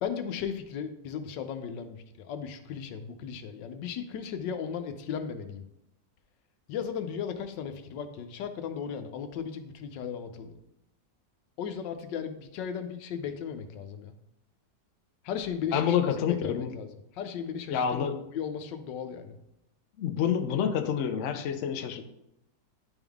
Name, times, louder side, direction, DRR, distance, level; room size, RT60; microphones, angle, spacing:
voice 1, 0.0-5.6 6.7-10.6 11.6-14.1 15.2-16.0 16.3-16.9 17.1-19.4, left 7 dB, 90° left, 8 dB, 1.3 m, -36 dB
voice 2, 15.7-16.8 17.7-18.2 20.0-22.0, left 8 dB, 70° left, 7 dB, 0.7 m, -28 dB
10.5 x 3.6 x 3.5 m, 0.83 s
omnidirectional pair, 1.9 m